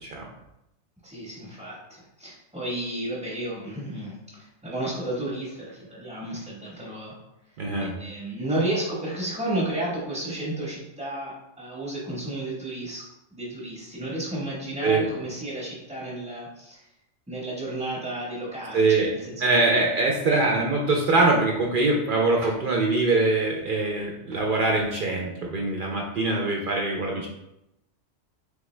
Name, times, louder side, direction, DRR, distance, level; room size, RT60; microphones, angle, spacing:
voice 1, 1.0-7.2 7.8-13.0 13.3-16.9 17.3-19.8 20.3-20.4, right 1 dB, 5° right, -8 dB, 0.8 m, -32 dB
voice 2, 7.6-7.9 14.8-15.0 18.7-19.1 19.4-27.3, right 3 dB, 60° right, 0 dB, 0.6 m, -23 dB
3.7 x 3.4 x 3.1 m, 0.88 s
omnidirectional pair, 1.3 m